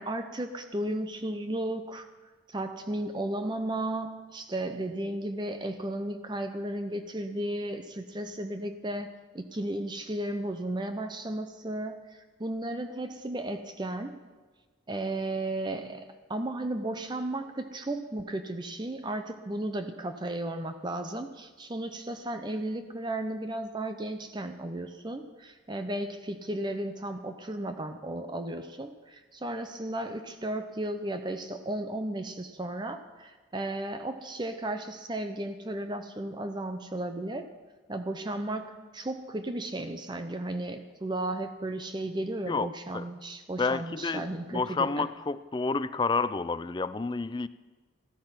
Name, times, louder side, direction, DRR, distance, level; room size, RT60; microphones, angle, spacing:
voice 1, 0.0-2.1 2.5-14.2 14.9-37.5 37.9-45.1, right 1 dB, 20° right, 8 dB, 0.7 m, -34 dB
voice 2, 43.6-47.5, left 4 dB, 20° left, 14 dB, 0.3 m, -29 dB
15.0 x 13.0 x 5.8 m, 1.3 s
head